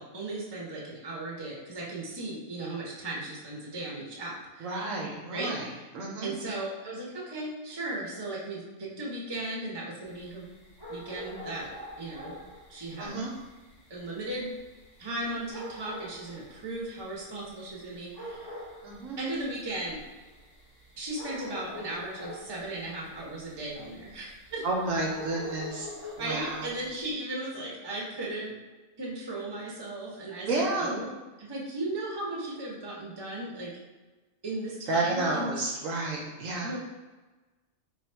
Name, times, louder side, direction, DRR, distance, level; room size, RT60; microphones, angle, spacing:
voice 1, 0.0-4.8 5.3-5.9 6.2-10.4 10.9-11.7 12.0-12.4 12.7-13.2 13.9-14.5 15.0-18.5 19.2-20.0 21.0-24.6 26.2-28.5 29.0-31.1 31.4-33.7 34.4-35.6 36.6-36.8, right 2 dB, 20° right, -4 dB, 0.7 m, -36 dB
voice 2, 4.6-5.7 5.9-6.3 13.0-13.3 18.8-19.2 24.6-26.7 30.5-31.0 34.9-36.7, right 2 dB, 70° right, -2 dB, 1.0 m, -31 dB
sound 1, 10.1-27.1, left 1 dB, 20° left, 0.9 m, -46 dB
3.3 x 2.3 x 4.3 m, 1.2 s
omnidirectional pair, 1.5 m